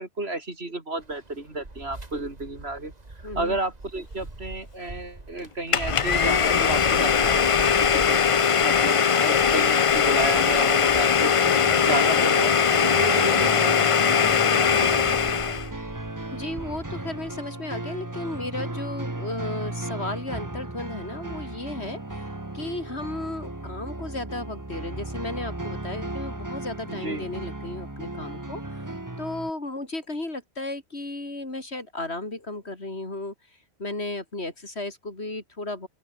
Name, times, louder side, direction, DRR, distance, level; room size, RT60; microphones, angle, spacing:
voice 1, 0.0-2.9 3.4-11.4 11.8-15.2 15.5-15.8 26.8-27.3, right 2 dB, 65° right, 4.3 m, -32 dB
sound 1, 1.0-17.5, right 2 dB, 35° right, 2.5 m, -41 dB
voice 2, 3.2-3.6 11.8-12.1 16.3-22.3 22.5-28.8 29.2-33.3 33.8-35.9, left 2 dB, 65° left, 4.7 m, -34 dB
Domestic sounds home sounds, 5.7-15.7, left 7 dB, 40° left, 0.5 m, -21 dB
sound 2, 11.1-29.5, right 2 dB, 15° right, 1.6 m, -35 dB
open air
omnidirectional pair, 1.2 m